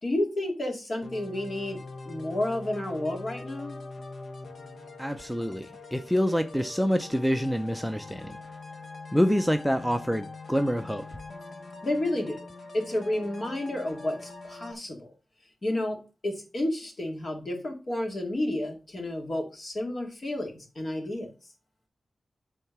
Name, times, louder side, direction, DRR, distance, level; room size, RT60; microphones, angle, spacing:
voice 1, 0.0-3.8 11.8-12.4 12.7-15.1 15.6-21.5, left 1 dB, 45° left, 2.3 m, -31 dB
sound 1, 1.0-14.7, left 3 dB, 70° left, 1.3 m, -43 dB
voice 2, 5.0-8.4 9.1-11.0, equal, ahead, 0.5 m, -26 dB
8.7 x 3.6 x 5.9 m
wide cardioid pair, 130°, 0 cm